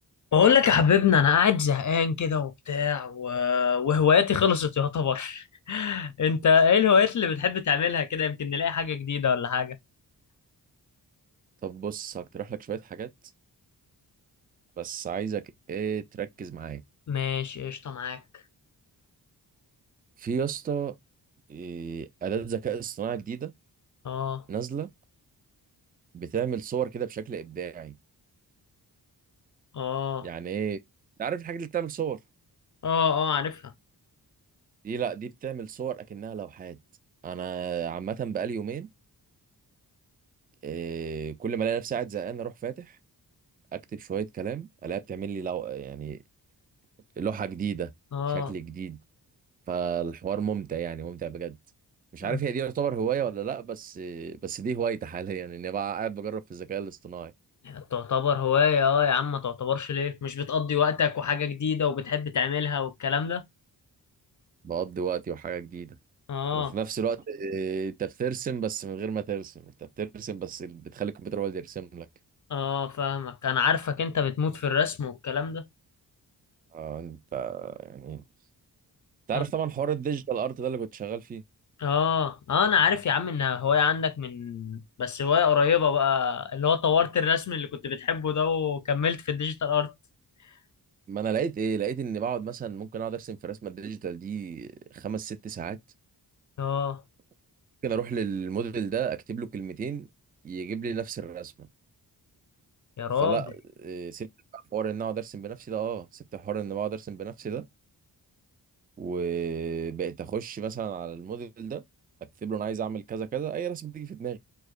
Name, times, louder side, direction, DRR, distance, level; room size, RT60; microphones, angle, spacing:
voice 1, 0.3-9.8 17.1-18.2 24.0-24.4 29.7-30.3 32.8-33.6 48.1-48.5 52.2-52.4 57.6-63.4 66.3-66.7 72.5-75.6 79.3-79.4 81.8-89.9 96.6-97.0 103.0-103.4, left 7 dB, 45° left, 0.5 m, -25 dB
voice 2, 11.6-13.1 14.8-16.8 20.2-20.9 21.5-23.5 24.5-24.9 26.1-28.0 30.2-30.8 31.2-32.2 34.8-36.8 37.2-38.9 40.6-43.0 43.7-46.2 47.2-47.9 48.3-49.0 49.7-51.6 52.1-57.3 64.6-66.0 66.5-72.1 76.7-78.2 79.3-81.4 91.1-95.8 97.8-100.1 100.4-101.7 103.2-103.5 103.8-104.3 104.5-107.6 109.0-111.8 112.4-114.4, right 7 dB, 25° right, 0.4 m, -32 dB
4.6 x 2.1 x 2.4 m
cardioid pair, 60°, 42 cm